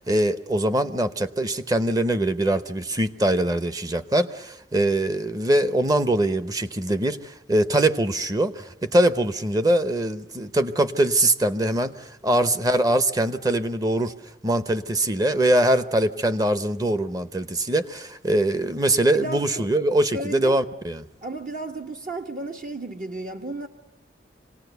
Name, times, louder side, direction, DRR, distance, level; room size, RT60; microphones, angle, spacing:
voice 1, 0.0-14.1 14.4-21.0, right 1 dB, 20° right, 0.8 m, -22 dB
voice 2, 19.2-19.7 20.1-20.6 21.2-23.7, right 2 dB, 50° right, 1.1 m, -33 dB
26.0 x 18.5 x 8.1 m
head